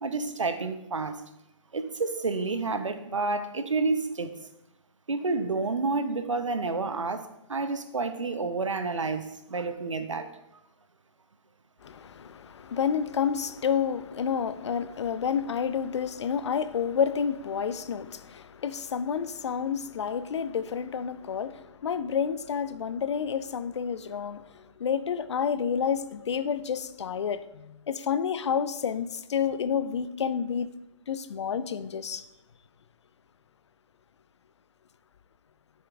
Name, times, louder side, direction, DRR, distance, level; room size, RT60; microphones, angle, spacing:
voice 1, 0.0-1.2 1.7-4.4 5.1-10.4, right 3 dB, 85° right, 0.8 m, -29 dB
voice 2, 11.8-30.7 31.1-32.2, left 7 dB, 65° left, 0.5 m, -29 dB
10.5 x 7.2 x 2.4 m
figure-of-eight pair, 125°, 16 cm